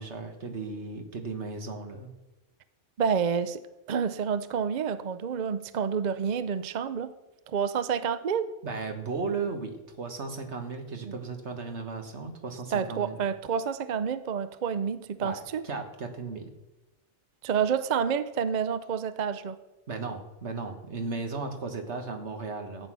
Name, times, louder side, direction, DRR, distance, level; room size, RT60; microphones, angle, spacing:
voice 1, 0.0-2.1 8.6-13.2 15.2-16.5 19.9-22.9, right 4 dB, 70° right, 6 dB, 1.7 m, -35 dB
voice 2, 3.0-3.6 3.9-7.1 7.5-8.5 11.1-11.2 12.7-15.6 17.4-19.6, right 7 dB, 50° right, 13 dB, 0.6 m, -29 dB
14.0 x 8.8 x 6.1 m, 1.0 s
omnidirectional pair, 1.2 m